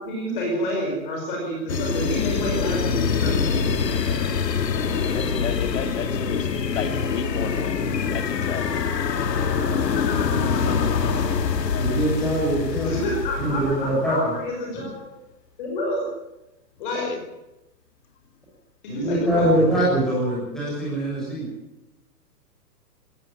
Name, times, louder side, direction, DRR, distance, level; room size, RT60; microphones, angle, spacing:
voice 1, 0.0-3.7 10.1-11.2 12.8-14.9 15.6-16.0 16.8-17.1 18.8-19.5, equal, 30° left, -1 dB, 5.5 m, -29 dB
sound 1, 1.7-14.0, left 6 dB, 85° left, 2.3 m, -24 dB
voice 2, 4.7-7.8 8.1-8.7 17.0-17.2 19.1-19.4, left 6 dB, 50° left, 7 dB, 2.8 m, -32 dB
voice 3, 11.8-12.9 13.4-14.3 18.9-21.5, right 1 dB, ahead, -8 dB, 6.9 m, -23 dB
18.5 x 15.5 x 9.0 m, 0.94 s
hypercardioid pair, 175°, 48 cm